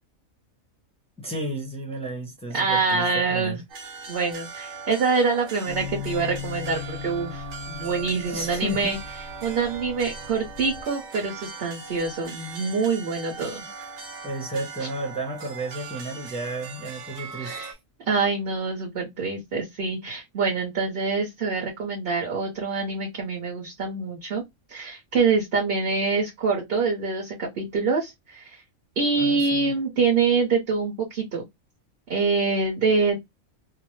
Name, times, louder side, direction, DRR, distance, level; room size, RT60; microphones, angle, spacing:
voice 1, 1.2-3.6 8.3-9.0 13.6-13.7 14.2-17.8 29.2-29.7, right 1 dB, 5° left, 0.7 m, -33 dB
voice 2, 2.5-3.6 4.1-9.0 9.4-13.7 17.4-17.7 18.1-24.4 24.7-28.6 29.0-31.4 32.1-33.2, right 4 dB, 50° right, 1.0 m, -25 dB
sound 1, 3.7-17.7, right 5 dB, 85° right, 1.2 m, -40 dB
sound 2, 5.7-10.8, left 7 dB, 80° left, 1.0 m, -38 dB
2.9 x 2.0 x 3.0 m
omnidirectional pair, 1.4 m